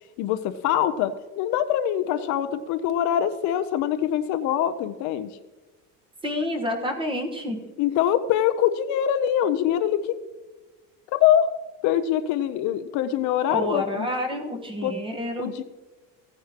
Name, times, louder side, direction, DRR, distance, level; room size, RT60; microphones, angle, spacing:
voice 1, 0.2-5.4 7.8-10.2 11.1-11.5 11.8-14.1 14.8-15.0 15.4-15.6, left 10 dB, 50° left, 10 dB, 0.6 m, -24 dB
voice 2, 6.2-7.6 13.5-15.5, left 1 dB, 15° right, 4 dB, 1.2 m, -28 dB
16.0 x 9.5 x 2.9 m, 1.2 s
cardioid pair, 160°, 37 cm